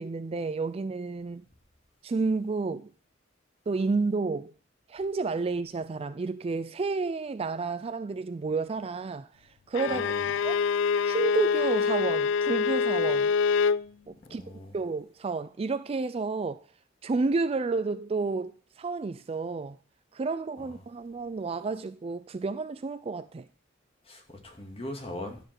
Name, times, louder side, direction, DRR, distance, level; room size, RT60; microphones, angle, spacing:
voice 1, 0.0-1.4 2.0-2.9 3.7-4.5 4.9-10.1 10.4-10.6 11.0-13.3 14.1-14.4 14.7-16.6 17.0-19.8 20.1-23.5, right 4 dB, 30° right, 0.3 m, -31 dB
Bowed string instrument, 9.7-13.8, left 5 dB, 65° left, 0.3 m, -25 dB
voice 2, 9.9-10.3 14.3-14.7 20.6-20.8 24.1-25.4, left 1 dB, 30° left, 2.0 m, -40 dB
11.0 x 5.0 x 5.9 m
head